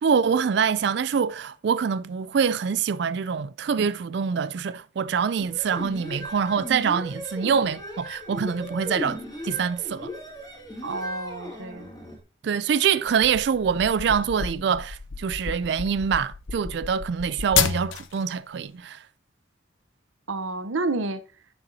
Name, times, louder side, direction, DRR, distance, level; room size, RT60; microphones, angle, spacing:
voice 1, 0.0-9.2 9.4-10.1 12.4-19.0, right 6 dB, 60° right, 0.3 m, -25 dB
sound 1, 5.4-12.2, left 1 dB, 20° left, 2.2 m, -37 dB
voice 2, 10.8-11.9 20.3-21.2, right 3 dB, 85° right, 0.8 m, -29 dB
sound 2, 13.1-18.2, left 7 dB, 85° left, 0.7 m, -30 dB
9.6 x 6.8 x 2.7 m
head